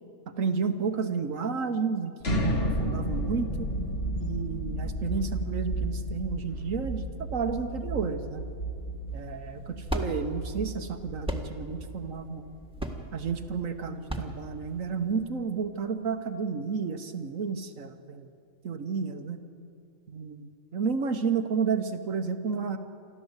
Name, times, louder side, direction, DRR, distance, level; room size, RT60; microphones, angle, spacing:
voice 1, 0.4-3.7 4.2-7.0 7.3-8.4 9.1-12.4 13.1-18.3 18.6-19.4 20.1-22.8, right 5 dB, 70° right, 7 dB, 1.5 m, -31 dB
sound 1, 2.2-14.0, right 1 dB, 45° left, 1.9 m, -33 dB
sound 2, 9.1-15.3, right 1 dB, 5° right, 1.5 m, -36 dB
28.0 x 12.5 x 8.1 m, 2.5 s
omnidirectional pair, 1.5 m